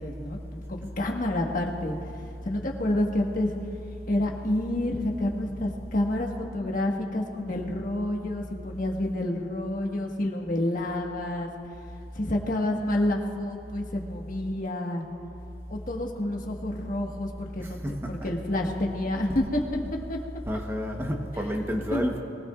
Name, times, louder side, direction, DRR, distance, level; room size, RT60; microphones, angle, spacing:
voice 1, 0.0-1.9 2.4-3.5 4.1-11.5 12.1-15.0 15.7-19.6 20.1-20.2 20.5-20.6 21.3-22.1, left 1 dB, 50° left, 0 dB, 1.4 m, -29 dB
voice 2, 20.5-22.2, equal, 15° right, 1 dB, 0.9 m, -29 dB
23.0 x 17.0 x 2.4 m, 2.6 s
head